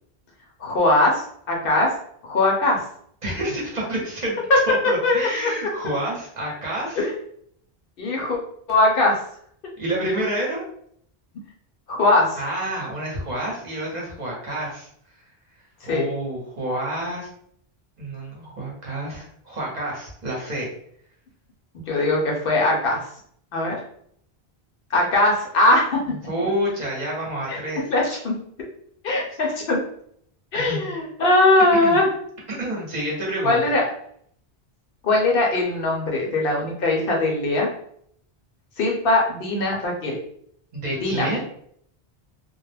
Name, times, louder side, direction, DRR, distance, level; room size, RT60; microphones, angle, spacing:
voice 1, 0.6-1.2 1.5-1.9 2.2-2.8 5.0-5.3 7.0-7.1 8.0-8.4 8.7-9.2 11.9-12.3 15.9-16.0 21.7-23.1 23.5-23.8 24.9-26.0 27.5-27.6 27.9-28.4 29.0-29.8 30.5-32.1 33.4-33.8 35.0-37.7 38.8-40.2 41.0-41.3, left 2 dB, 65° left, -1 dB, 0.8 m, -20 dB
voice 2, 3.2-4.4 4.7-7.0 9.8-10.6 12.4-14.9 15.9-17.3 18.0-20.7 26.1-27.8 30.5-30.8 31.8-32.0 32.6-33.6 40.7-41.4, right 1 dB, 45° right, -3 dB, 0.8 m, -28 dB
2.3 x 2.0 x 3.2 m, 0.66 s
omnidirectional pair, 1.0 m